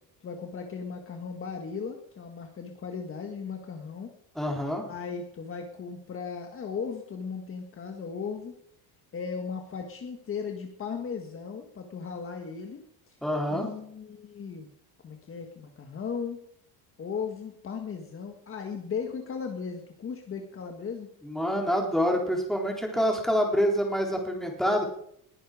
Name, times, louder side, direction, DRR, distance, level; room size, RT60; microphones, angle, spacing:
voice 1, 0.2-4.1 4.4-4.5 4.9-8.5 9.1-13.2 13.5-14.7 15.0-16.4 17.0-21.1, left 6 dB, 35° left, 4 dB, 1.7 m, -37 dB
voice 2, 4.4-4.8 13.2-13.7 21.2-24.8, equal, ahead, 1 dB, 3.7 m, -26 dB
20.5 x 10.0 x 5.0 m, 0.70 s
cardioid pair, 135°, 39 cm